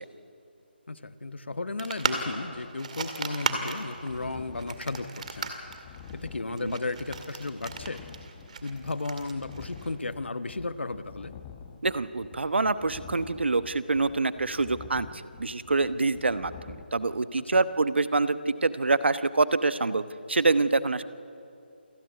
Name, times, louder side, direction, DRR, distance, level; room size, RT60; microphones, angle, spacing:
voice 1, 0.9-5.5 6.1-8.0 8.6-11.3 17.4-17.6, left 3 dB, 85° left, 12 dB, 1.2 m, -34 dB
sound 1, 1.8-10.0, right 4 dB, 40° right, 2.1 m, -36 dB
sound 2, 4.1-16.8, left 7 dB, 15° left, 1.0 m, -48 dB
voice 2, 11.8-15.1 15.4-20.0 20.3-21.0, right 3 dB, 80° right, 13 dB, 1.0 m, -26 dB
28.0 x 11.5 x 9.4 m, 2.6 s
figure-of-eight pair, 165°, 6 cm